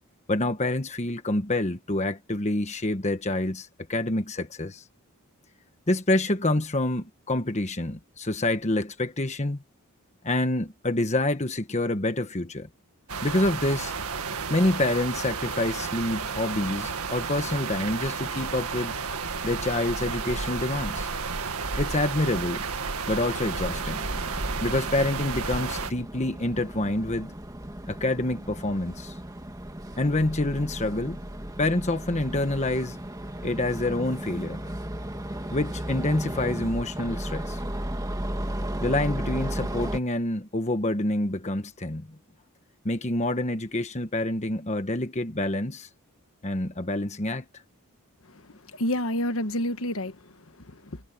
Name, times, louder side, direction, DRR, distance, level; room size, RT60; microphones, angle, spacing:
voice 1, 0.3-4.8 5.9-9.6 10.2-12.7 13.2-13.9 14.5-19.0 19.4-21.1 21.8-22.6 23.1-24.1 24.6-27.3 27.9-29.2 30.0-31.2 31.6-33.0 33.4-34.7 35.5-37.6 38.8-42.2 42.8-45.9 46.4-47.5, left 2 dB, 30° left, 1.3 m, -27 dB
sound 1, 13.1-25.9, right 4 dB, 85° right, 1.9 m, -32 dB
sound 2, 23.6-40.0, right 1 dB, 15° right, 1.9 m, -35 dB
voice 2, 48.3-51.0, left 1 dB, 65° left, 1.5 m, -30 dB
head